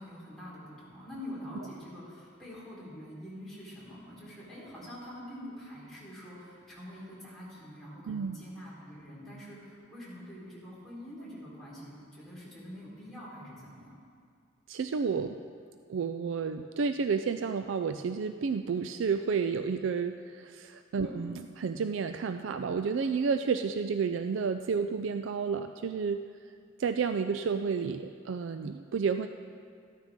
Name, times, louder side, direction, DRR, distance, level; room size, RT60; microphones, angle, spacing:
voice 1, 0.0-14.0 21.0-21.1, equal, ahead, -9 dB, 3.8 m, -45 dB
voice 2, 8.1-8.4 14.7-15.4 15.9-26.2 26.8-29.3, right 5 dB, 70° right, 8 dB, 0.4 m, -31 dB
14.0 x 13.0 x 3.6 m, 2.2 s
head